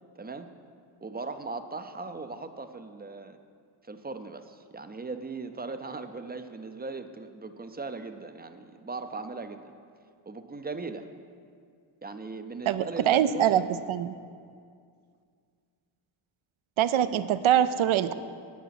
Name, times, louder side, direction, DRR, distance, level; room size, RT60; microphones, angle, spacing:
voice 1, 0.2-0.5 1.0-3.4 3.9-9.6 10.3-11.1 12.0-13.6, right 3 dB, 20° right, 8 dB, 0.4 m, -38 dB
voice 2, 12.7-13.6 13.9-14.2 16.8-18.1, right 10 dB, 80° right, 13 dB, 0.6 m, -23 dB
9.3 x 9.3 x 5.8 m, 2.2 s
wide cardioid pair, 150°, 48 cm